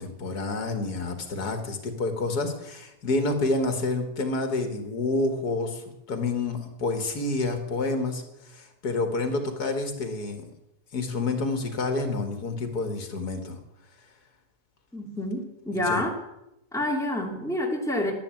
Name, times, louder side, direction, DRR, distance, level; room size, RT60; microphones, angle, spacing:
voice 1, 0.0-5.8 6.1-8.2 8.5-10.4 10.9-13.6 15.8-16.0, left 2 dB, 80° left, 6 dB, 2.4 m, -28 dB
voice 2, 14.9-16.1 16.7-18.1, left 1 dB, ahead, -1 dB, 2.8 m, -28 dB
11.5 x 11.0 x 9.1 m, 0.86 s
omnidirectional pair, 1.6 m